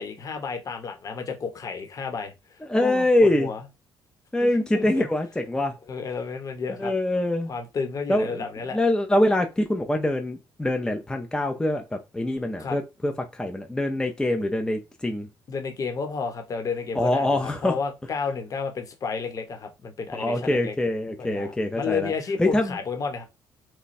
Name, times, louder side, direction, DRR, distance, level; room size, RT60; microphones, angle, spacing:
voice 1, 0.0-2.3 2.8-3.6 4.4-5.1 5.9-6.9 7.5-8.8 12.6-12.8 15.5-20.7 21.2-23.2, left 5 dB, 45° left, 1.0 m, -31 dB
voice 2, 2.7-3.5 4.3-5.7 6.8-7.5 8.1-8.4 8.7-15.3 16.9-17.8 20.1-22.1 22.4-22.8, left 1 dB, 10° left, 0.5 m, -24 dB
3.1 x 2.2 x 4.2 m
cardioid pair, 90°, 8 cm